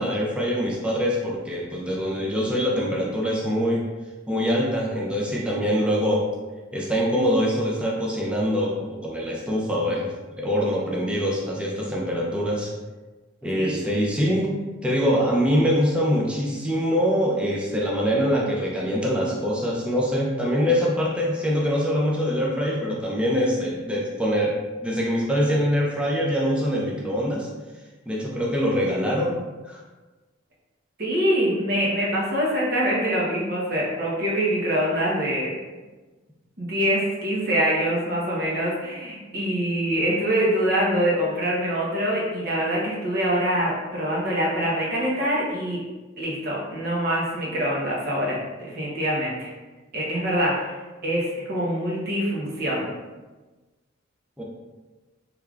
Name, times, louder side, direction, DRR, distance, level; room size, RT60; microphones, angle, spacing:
voice 1, 0.0-3.8 4.3-6.3 6.7-10.1 10.4-12.7 13.4-14.5 14.8-27.5 28.1-29.4 29.6-29.8 54.4-54.5, equal, 5° right, -4 dB, 0.5 m, -24 dB
voice 2, 31.0-35.5 36.6-45.8 46.2-49.5 49.9-50.8 51.0-52.9, equal, 50° right, -4 dB, 0.9 m, -24 dB
3.5 x 3.3 x 2.4 m, 1.2 s
head